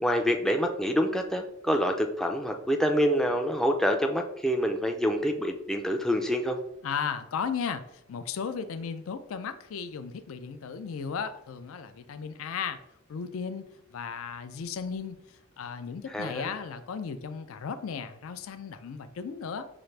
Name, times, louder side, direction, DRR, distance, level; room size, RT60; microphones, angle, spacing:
voice 1, 0.0-6.6 16.1-16.5, equal, ahead, 3 dB, 0.4 m, -26 dB
voice 2, 6.8-12.8 13.1-13.7 13.9-15.2 15.6-19.7, left 6 dB, 70° left, 10 dB, 0.4 m, -35 dB
5.9 x 2.5 x 3.2 m, 0.80 s
head